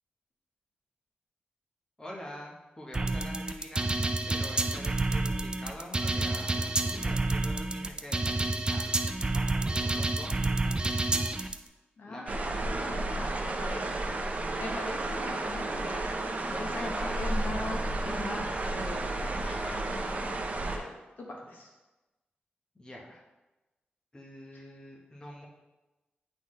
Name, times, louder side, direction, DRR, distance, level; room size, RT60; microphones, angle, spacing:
voice 1, 2.0-11.0 12.0-12.6 16.4-17.3 19.4-20.0 22.7-23.2 24.1-25.5, left 1 dB, 20° left, -2 dB, 1.1 m, -45 dB
sound 1, 2.9-11.5, right 2 dB, 25° right, 0.4 m, -29 dB
voice 2, 12.0-14.0 14.6-19.1 19.9-20.3 20.7-20.8 21.2-21.7 24.5-24.6, left 2 dB, 65° left, -1 dB, 1.2 m, -40 dB
sound 2, 12.3-20.8, right 2 dB, 45° right, 0.8 m, -32 dB
9.3 x 3.9 x 3.2 m, 1.1 s
wide cardioid pair, 100°, 4 cm